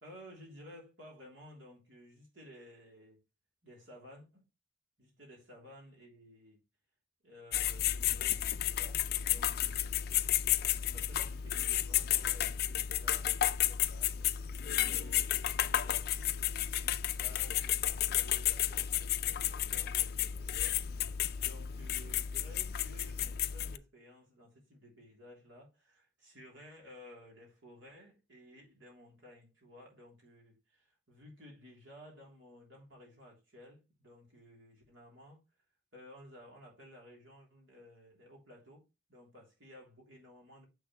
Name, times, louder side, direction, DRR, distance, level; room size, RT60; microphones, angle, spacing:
voice 1, 0.0-3.2 3.6-4.4 5.0-6.6 7.2-10.4 10.9-14.6 14.9-20.8 21.4-35.4 35.9-38.8 39.1-40.7, equal, 75° right, 3.1 m, -55 dB
sound 1, 7.5-23.8, left 11 dB, 50° left, 0.4 m, -32 dB
7.2 x 6.1 x 3.1 m
head